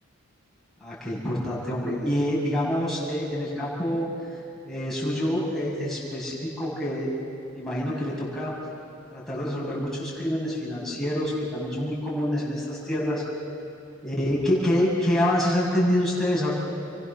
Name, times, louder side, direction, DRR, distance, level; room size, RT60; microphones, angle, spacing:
voice 1, 0.8-4.1 4.6-7.1 7.5-8.5 9.1-13.2 14.0-16.5, left 1 dB, ahead, -7 dB, 7.2 m, -26 dB
29.0 x 23.5 x 6.9 m, 2.7 s
head